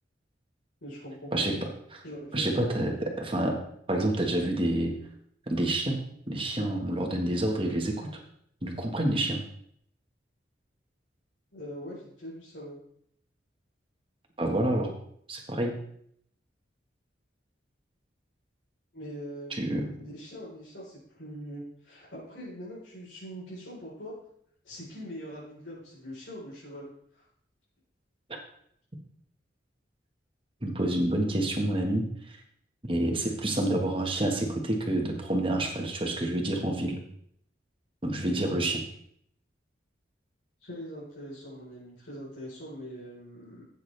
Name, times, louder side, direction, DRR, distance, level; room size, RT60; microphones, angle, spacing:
voice 1, 0.8-1.5 2.0-2.9 11.5-12.8 18.9-19.5 20.0-24.1 24.6-27.2 40.6-43.7, equal, 75° left, -7 dB, 4.2 m, -42 dB
voice 2, 2.3-2.9 3.2-3.6 3.9-4.9 5.5-6.0 6.3-8.1 8.6-9.4 14.4-14.9 15.3-15.7 19.5-19.9 30.6-32.4 32.8-37.0 38.0-38.8, right 1 dB, 30° right, 1 dB, 1.5 m, -28 dB
13.0 x 8.5 x 3.4 m, 0.69 s
head